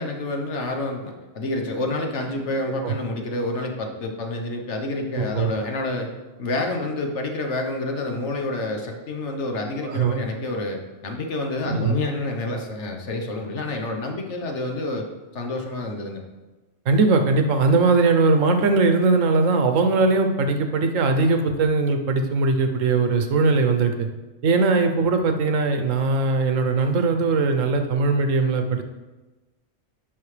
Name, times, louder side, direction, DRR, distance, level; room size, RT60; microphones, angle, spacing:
voice 1, 0.0-6.1 6.4-15.0 15.3-16.2, left 2 dB, 65° left, 3 dB, 1.3 m, -28 dB
voice 2, 5.2-5.5 9.8-10.2 11.6-11.9 16.9-24.1 24.4-28.8, right 3 dB, 85° right, 6 dB, 1.2 m, -20 dB
10.5 x 5.7 x 3.3 m, 1.2 s
omnidirectional pair, 1.3 m